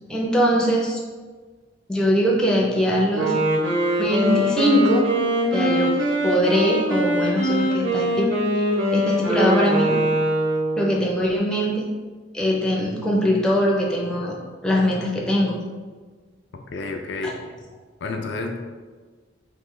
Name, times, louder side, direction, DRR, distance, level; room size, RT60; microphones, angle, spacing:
voice 1, 0.1-1.0 1.9-3.3 4.0-5.1 5.5-8.3 8.6-8.7 8.9-9.9 10.8-11.8 12.3-14.3 14.6-15.6, equal, 5° left, -3 dB, 0.5 m, -21 dB
Wind instrument woodwind instrument, 3.1-11.0, equal, 65° right, 0.9 m, -22 dB
voice 2, 16.7-17.4 18.0-18.6, left 3 dB, 60° left, 3 dB, 0.4 m, -29 dB
3.2 x 2.9 x 3.6 m, 1.4 s
head